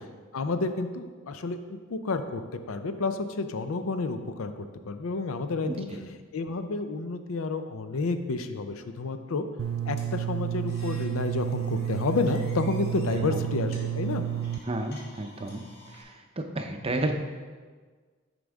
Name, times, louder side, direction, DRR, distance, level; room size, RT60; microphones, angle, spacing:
voice 1, 0.3-5.9 6.3-9.4 9.9-14.2, left 3 dB, 75° left, 9 dB, 0.5 m, -30 dB
voice 2, 5.6-6.0 13.1-13.5 14.6-15.6 15.9-17.2, right 1 dB, 25° right, 5 dB, 0.5 m, -32 dB
sound 1, 9.6-14.6, right 10 dB, 75° right, 0.3 m, -31 dB
sound 2, 10.0-16.0, left 1 dB, 50° left, 1.5 m, -51 dB
9.7 x 5.2 x 3.5 m, 1.5 s
head